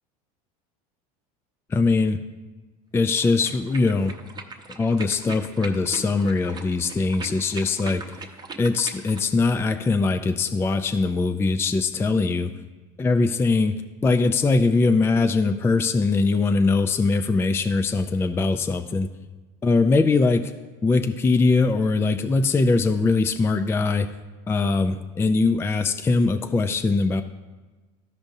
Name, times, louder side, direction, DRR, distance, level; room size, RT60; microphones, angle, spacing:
voice 1, 1.7-2.2 2.9-4.2 4.8-8.0 8.6-12.5 13.0-19.1 19.6-20.5 20.8-24.1 24.5-27.2, left 3 dB, 10° left, 7 dB, 0.3 m, -21 dB
sound 1, 3.1-9.3, right 4 dB, 20° right, 0.9 m, -40 dB
14.0 x 5.2 x 2.7 m, 1.2 s
supercardioid pair, 100°, 19 cm